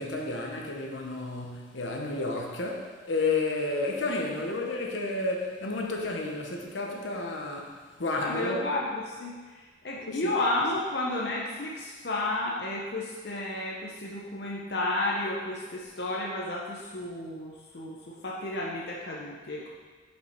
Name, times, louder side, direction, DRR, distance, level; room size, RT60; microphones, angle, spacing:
voice 1, 0.0-7.7 8.0-8.6 10.1-10.3, left 2 dB, 80° left, 0 dB, 1.0 m, -31 dB
voice 2, 8.1-19.7, left 2 dB, 60° left, -3 dB, 0.8 m, -32 dB
6.9 x 5.3 x 4.5 m, 1.4 s
head